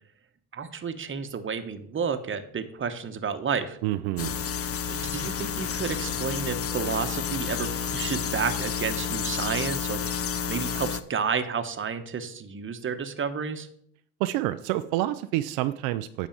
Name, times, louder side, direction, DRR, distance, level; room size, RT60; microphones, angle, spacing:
voice 1, 0.5-3.8 4.9-13.7, right 6 dB, 25° right, 9 dB, 1.1 m, -31 dB
voice 2, 3.8-4.3 14.2-16.3, right 15 dB, 70° right, 10 dB, 0.6 m, -28 dB
sound 1, 4.2-11.0, left 7 dB, 30° left, 0.7 m, -30 dB
9.1 x 4.1 x 7.1 m, 0.64 s
hypercardioid pair, 75°, 45 cm